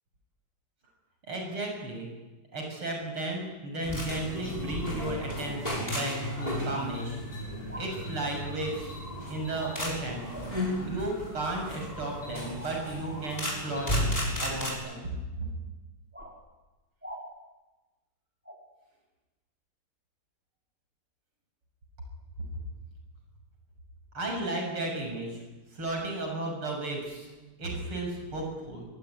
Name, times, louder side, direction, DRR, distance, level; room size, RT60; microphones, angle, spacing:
voice 1, 1.3-2.1 2.5-7.2 7.8-8.9 9.3-10.2 10.8-13.9 14.4-15.1 24.1-25.4 25.7-27.3 27.6-28.9, right 2 dB, 80° right, 1 dB, 7.9 m, -34 dB
sound 1, 3.8-14.7, equal, 15° left, 7.3 m, -34 dB
sound 2, 5.6-5.8 6.7-6.9 7.7-7.9 10.3-10.5 12.9-13.2 14.5-14.7 16.1-16.3 17.0-17.2 18.4-18.6, right 1 dB, 5° right, 5.3 m, -43 dB
24.5 x 23.5 x 9.9 m, 1.1 s
omnidirectional pair, 2.4 m